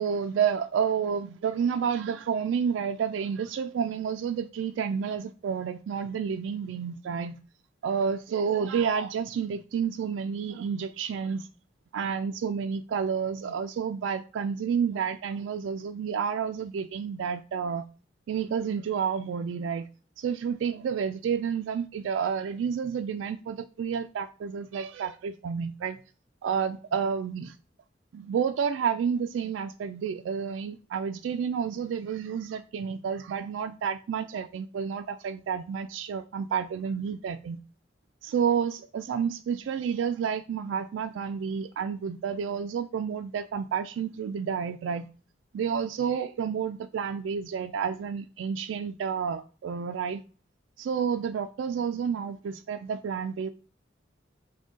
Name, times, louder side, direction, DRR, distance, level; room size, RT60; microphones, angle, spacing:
voice 1, 0.0-7.4 7.8-11.5 11.9-17.9 18.3-19.9 20.2-26.0 26.4-27.6 28.1-37.6 38.2-45.1 45.5-50.2 50.8-53.5, right 7 dB, 85° right, 0.3 m, -30 dB
6.2 x 2.2 x 3.7 m
head